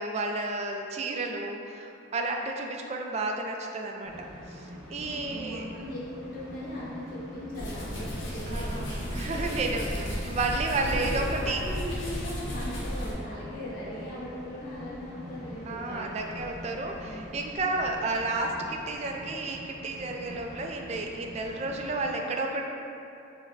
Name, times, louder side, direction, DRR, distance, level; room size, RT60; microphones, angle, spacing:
voice 1, 0.0-5.6 8.5-11.6 15.7-22.6, right 2 dB, 35° right, 2 dB, 0.3 m, -32 dB
sound 1, 4.1-22.1, equal, ahead, 1.1 m, -44 dB
voice 2, 4.9-8.9 9.3-9.5 11.0-16.8 17.1-17.5, left 1 dB, 45° left, -7 dB, 0.6 m, -39 dB
sound 2, 7.5-13.1, equal, 70° left, 0.9 m, -33 dB
5.6 x 2.1 x 3.9 m, 2.7 s
head